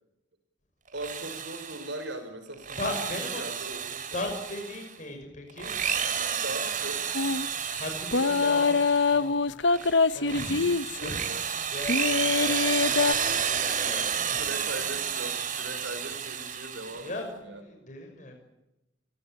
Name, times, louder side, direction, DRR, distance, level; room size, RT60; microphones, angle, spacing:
Drill, 0.9-2.0 2.5-4.9 5.5-9.2 9.7-17.2, right 7 dB, 45° right, 2.9 m, -31 dB
voice 1, 0.9-4.2 6.4-7.1 8.2-8.6 9.7-9.9 11.0-11.5 13.7-17.6, right 1 dB, 75° right, 7 dB, 5.9 m, -40 dB
voice 2, 2.8-3.4 4.1-5.8 7.8-14.4 17.0-18.4, left 1 dB, 45° left, 4 dB, 5.9 m, -38 dB
sound 1, 7.1-7.5 8.1-11.1 11.9-13.1, left 4 dB, 75° left, 0.9 m, -24 dB
29.0 x 18.0 x 9.1 m, 0.94 s
head